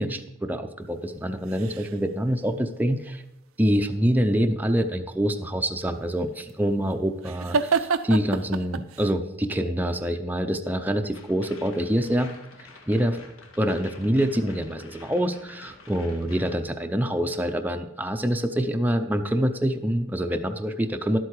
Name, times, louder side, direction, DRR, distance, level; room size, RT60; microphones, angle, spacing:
voice 1, 0.0-3.2 3.6-12.3 12.9-13.2 13.6-21.2, equal, 10° right, 5 dB, 0.5 m, -25 dB
sound 1, 1.2-2.2 5.9-9.1, right 5 dB, 85° right, 0.6 m, -29 dB
sound 2, 11.1-16.5, left 3 dB, 85° left, 1.6 m, -48 dB
11.5 x 8.1 x 4.7 m, 0.92 s
head